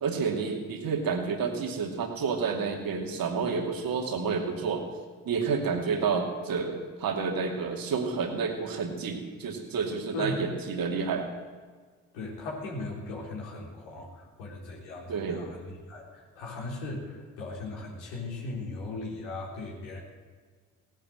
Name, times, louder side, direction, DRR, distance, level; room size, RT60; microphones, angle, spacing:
voice 1, 0.0-4.9 5.2-11.3 15.1-15.5, right 5 dB, 60° right, 3 dB, 2.6 m, -30 dB
voice 2, 12.1-20.0, left 2 dB, 80° left, -2 dB, 3.8 m, -38 dB
17.0 x 10.5 x 7.9 m, 1.5 s
hypercardioid pair, 45°, 40 cm